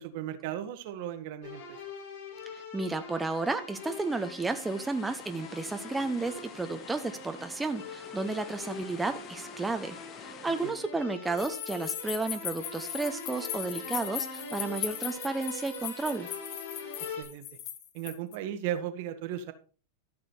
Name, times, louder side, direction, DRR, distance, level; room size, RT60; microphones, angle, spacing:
voice 1, 0.0-1.8 10.6-10.7 17.2-17.5 17.9-19.5, right 11 dB, 60° right, 9 dB, 1.6 m, -36 dB
sound 1, 1.4-17.2, left 4 dB, 65° left, 6.4 m, -43 dB
voice 2, 2.5-16.3, right 3 dB, 10° right, 7 dB, 0.9 m, -32 dB
sound 2, 3.7-10.7, left 9 dB, 35° left, 0.8 m, -49 dB
sound 3, 11.4-18.4, left 10 dB, 50° left, 1.5 m, -38 dB
13.5 x 6.2 x 4.4 m, 0.37 s
hypercardioid pair, 105°, 0 cm